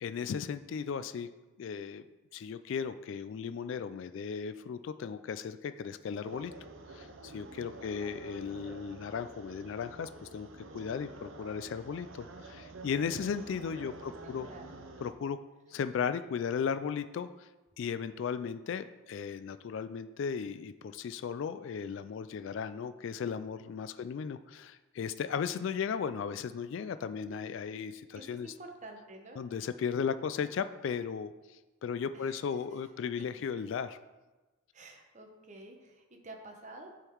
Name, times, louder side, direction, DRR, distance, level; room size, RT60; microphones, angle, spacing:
voice 1, 0.0-1.3 1.6-2.0 2.3-6.5 6.9-10.5 10.7-14.5 15.0-15.4 15.7-17.5 17.8-28.5 29.4-34.0, left 6 dB, 65° left, 11 dB, 0.3 m, -36 dB
sound 1, 6.2-15.1, right 3 dB, 70° right, 0.7 m, -49 dB
voice 2, 7.6-8.0 13.8-13.9 14.2-14.7 28.1-29.4 32.1-32.8 33.2-33.3 34.7-36.9, right 2 dB, 35° right, 2 dB, 0.9 m, -50 dB
9.7 x 3.8 x 4.5 m, 1.2 s
head